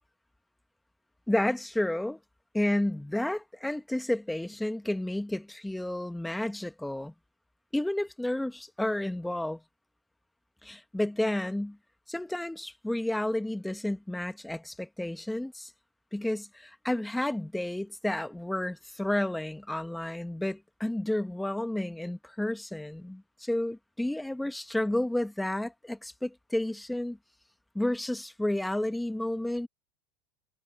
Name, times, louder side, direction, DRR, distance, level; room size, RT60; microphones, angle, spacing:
voice 1, 1.3-2.2 2.5-7.1 7.7-9.6 10.6-11.8 12.1-15.7 16.1-27.2 27.7-29.7, left 1 dB, 5° left, 1.5 m, -31 dB
supercardioid pair, 120°, 0 cm